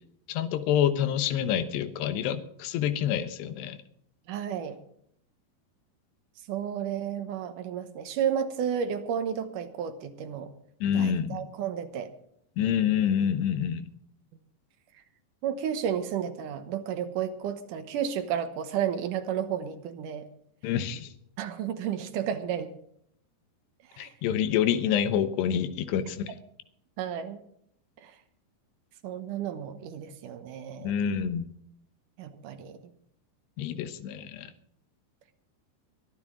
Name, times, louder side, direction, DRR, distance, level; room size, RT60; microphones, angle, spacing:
voice 1, 0.3-3.8 10.8-11.5 12.6-13.9 20.6-21.1 24.0-26.3 30.8-31.5 33.6-34.5, left 9 dB, 85° left, 11 dB, 3.2 m, -27 dB
voice 2, 4.3-4.8 6.5-10.5 10.9-12.1 15.4-20.3 21.4-22.7 23.9-24.1 27.0-27.4 28.0-28.1 29.0-30.9 32.2-32.8 33.7-33.9, right 8 dB, 65° right, 8 dB, 2.2 m, -32 dB
22.5 x 12.0 x 3.8 m, 0.70 s
omnidirectional pair, 4.7 m